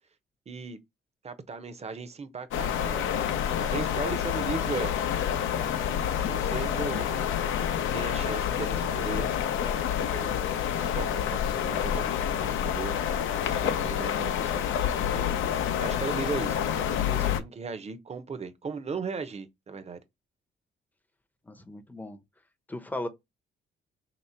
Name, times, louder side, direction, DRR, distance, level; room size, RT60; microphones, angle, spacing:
voice 1, 0.5-0.8 1.2-3.1 3.6-4.9 6.1-7.3 7.9-9.3 10.0-10.4 10.8-12.1 12.4-13.0 13.4-14.7 15.1-15.3 15.8-20.0, right 5 dB, 35° right, 0.8 m, -37 dB
sound 1, 2.5-17.4, left 9 dB, 80° left, 0.6 m, -28 dB
voice 2, 21.5-22.2 22.7-23.1, left 1 dB, 10° left, 0.7 m, -36 dB
3.1 x 3.0 x 4.3 m
cardioid pair, 90°, 20 cm